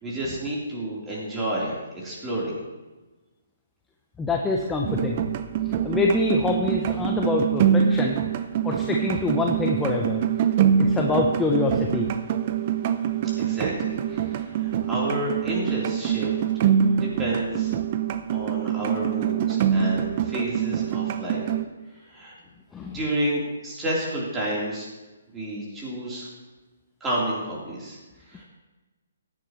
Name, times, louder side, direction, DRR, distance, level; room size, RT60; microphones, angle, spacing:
voice 1, 0.0-2.6 13.4-16.3 16.9-17.7 18.3-21.5 21.9-22.3 22.9-24.9 25.3-26.3 27.0-28.0 28.3-28.4, right 1 dB, 10° right, -6 dB, 3.7 m, -30 dB
voice 2, 4.2-5.2 5.7-8.2 8.6-10.2 10.8-12.1 22.7-23.0, left 3 dB, 10° left, 0 dB, 0.8 m, -25 dB
sound 1, 4.9-21.7, right 8 dB, 40° right, 0.6 m, -25 dB
15.5 x 9.9 x 3.1 m, 1.2 s
hypercardioid pair, 145°, 0 cm